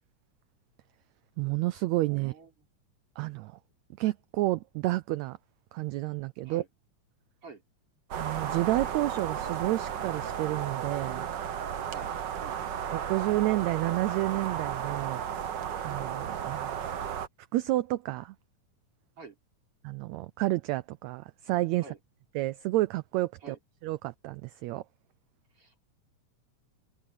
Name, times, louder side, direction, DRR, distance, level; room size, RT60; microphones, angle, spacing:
voice 1, 1.4-2.3 3.2-3.6 4.0-5.4 5.7-6.6 8.2-11.3 12.9-15.2 15.8-16.9 17.5-18.3 19.8-21.8 22.3-23.5 23.8-24.8, right 18 dB, 90° right, 1.5 m, -30 dB
voice 2, 2.0-2.5 6.4-6.7 7.4-7.6 11.9-12.1 12.4-12.6 19.2-19.4 21.8-22.0 23.4-23.6 25.5-25.8, right 4 dB, 45° right, 5.8 m, -49 dB
sound 1, 8.1-17.3, right 8 dB, 70° right, 1.0 m, -34 dB
omnidirectional pair, 3.7 m